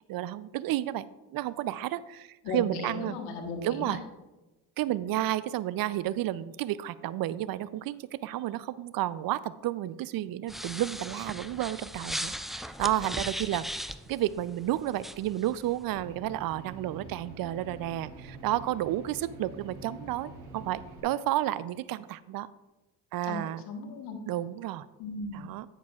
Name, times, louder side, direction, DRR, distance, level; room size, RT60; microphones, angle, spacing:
voice 1, 0.1-1.0 1.3-3.2 3.6-4.0 4.8-22.5 23.1-23.6 24.3-24.9 25.3-25.7, right 14 dB, 60° right, 18 dB, 0.5 m, -31 dB
voice 2, 2.4-4.0 23.2-24.2 25.0-25.4, left 3 dB, 85° left, 4 dB, 1.3 m, -36 dB
sound 1, 10.5-15.8, equal, ahead, 0.4 m, -38 dB
sound 2, 15.8-21.0, right 3 dB, 90° right, 2.1 m, -46 dB
9.5 x 9.4 x 2.4 m, 1.1 s
supercardioid pair, 70°, 39 cm